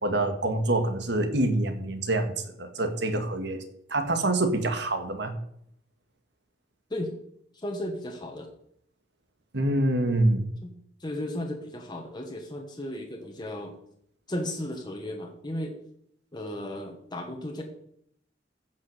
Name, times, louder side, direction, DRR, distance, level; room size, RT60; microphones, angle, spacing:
voice 1, 0.0-3.6 3.9-5.4 9.5-10.5, right 2 dB, 65° right, 7 dB, 1.9 m, -26 dB
voice 2, 7.5-8.5 10.6-10.7 11.0-13.7 14.3-15.8 16.3-17.6, left 1 dB, 25° left, 2 dB, 1.4 m, -35 dB
15.0 x 6.2 x 6.6 m, 0.69 s
head